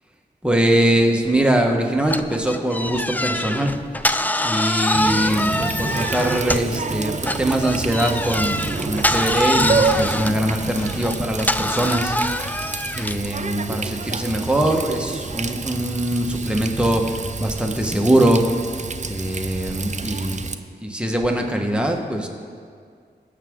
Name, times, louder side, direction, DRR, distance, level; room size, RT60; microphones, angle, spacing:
voice 1, 0.4-3.7 4.4-12.5 13.0-18.4 19.0-20.4 20.8-22.3, right 1 dB, 5° right, 1 dB, 1.4 m, -22 dB
sound 1, 2.1-6.8 7.2-13.3, left 1 dB, 10° left, 0.4 m, -24 dB
Water tap faucet, 4.9-20.5, right 4 dB, 40° right, 0.6 m, -28 dB
19.0 x 6.6 x 3.8 m, 2.1 s
wide cardioid pair, 60°, 18 cm